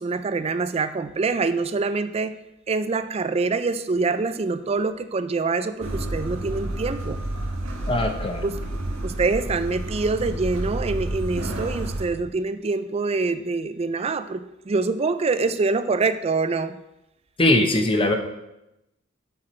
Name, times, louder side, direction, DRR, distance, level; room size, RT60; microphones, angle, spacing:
voice 1, 0.0-2.3 2.7-7.2 8.4-8.6 9.0-16.8, right 3 dB, 30° right, 12 dB, 0.4 m, -25 dB
sound 1, 5.8-12.1, right 1 dB, 80° right, 1.4 m, -30 dB
voice 2, 7.9-8.4 17.4-18.1, left 1 dB, 25° left, 5 dB, 0.8 m, -20 dB
7.7 x 5.8 x 4.3 m, 0.89 s
head